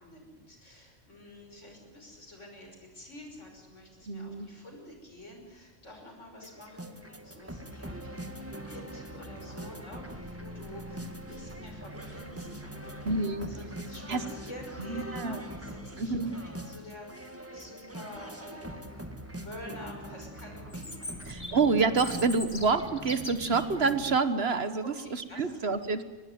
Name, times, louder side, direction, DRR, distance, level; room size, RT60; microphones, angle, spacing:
voice 1, 0.0-19.2 19.4-21.6 24.8-25.8, left 1 dB, 70° left, 3 dB, 6.1 m, -48 dB
voice 2, 4.1-4.5 13.0-13.5 14.1-14.2 14.9-15.4 16.0-16.4 21.3-26.0, right 4 dB, 55° right, 11 dB, 1.4 m, -28 dB
sound 1, 6.4-24.2, right 1 dB, 10° right, 1.8 m, -42 dB
Chirp tweet, 20.7-23.7, left 2 dB, 25° left, 1.8 m, -41 dB
24.0 x 20.5 x 9.3 m, 1.2 s
omnidirectional pair, 1.3 m